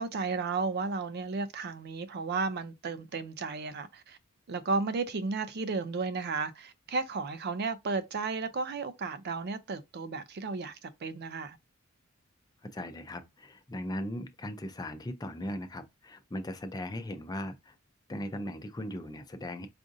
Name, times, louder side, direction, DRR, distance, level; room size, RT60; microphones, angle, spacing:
voice 1, 0.0-4.2 4.5-11.6, right 4 dB, 50° right, 0.5 m, -33 dB
voice 2, 12.7-17.7 18.1-19.7, left 1 dB, 20° left, 0.5 m, -38 dB
4.8 x 2.5 x 2.6 m
head